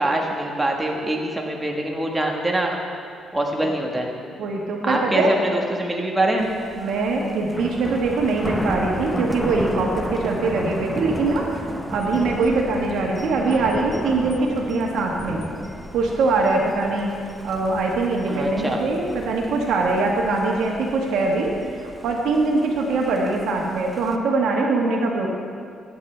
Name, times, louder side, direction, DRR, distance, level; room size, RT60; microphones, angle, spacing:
voice 1, 0.0-2.8 3.3-4.1 4.8-6.5 18.3-18.8, right 1 dB, 15° right, 0 dB, 1.4 m, -24 dB
voice 2, 4.4-5.3 6.8-11.5 11.9-15.4 15.9-17.1 17.4-21.5 21.8-25.3, right 3 dB, 80° right, 0 dB, 1.5 m, -22 dB
Thunder, 6.4-24.2, equal, 5° left, 0.8 m, -34 dB
15.0 x 8.5 x 3.4 m, 2.3 s
cardioid pair, 90°, 0 cm